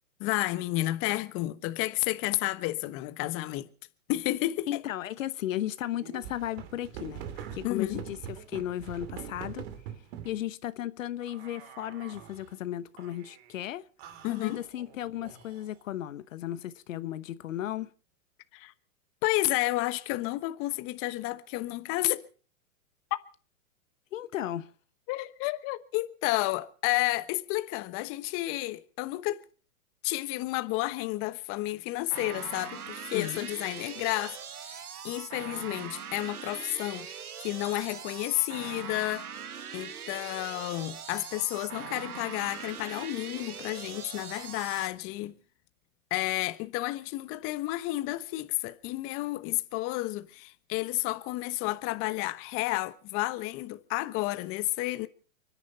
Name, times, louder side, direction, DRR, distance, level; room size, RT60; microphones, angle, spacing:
voice 1, 0.2-3.7 4.1-4.7 7.6-8.0 14.2-14.6 18.5-18.7 19.2-22.2 25.1-29.4 30.0-37.1 37.4-39.3 39.7-45.4 46.1-55.1, left 19 dB, 30° left, 1.1 m, -31 dB
voice 2, 4.7-7.2 7.5-9.6 10.2-13.8 14.3-17.9 24.1-24.7 33.1-33.5, left 12 dB, 60° left, 1.1 m, -35 dB
sound 1, 5.9-10.4 11.2-12.5 13.0-13.5 14.0-15.8, right 9 dB, 45° right, 2.5 m, -44 dB
sound 2, 32.1-44.9, right 7 dB, 90° right, 1.6 m, -42 dB
30.0 x 10.5 x 4.2 m
hypercardioid pair, 130°, 43 cm